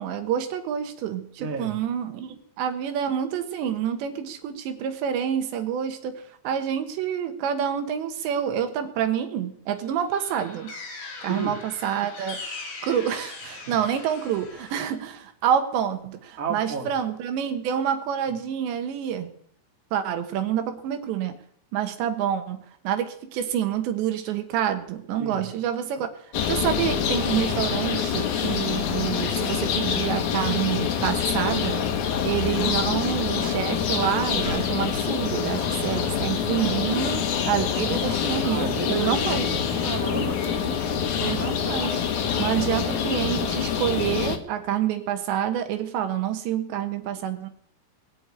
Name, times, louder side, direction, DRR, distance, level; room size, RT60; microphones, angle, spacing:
voice 1, 0.0-10.7 11.2-12.4 12.8-19.3 19.9-21.3 21.7-26.1 26.5-31.8 32.2-39.4 41.2-42.1 42.4-47.5, right 9 dB, 70° right, 7 dB, 3.3 m, -27 dB
voice 2, 1.4-1.7 11.2-11.6 13.6-13.8 16.4-16.9 25.2-25.4 38.4-41.0, right 4 dB, 50° right, 2 dB, 0.9 m, -32 dB
sound 1, 9.8-15.0, left 3 dB, 55° left, 5.4 m, -40 dB
sound 2, 26.3-44.4, left 8 dB, 80° left, 1.7 m, -26 dB
20.0 x 7.8 x 8.9 m, 0.65 s
omnidirectional pair, 5.6 m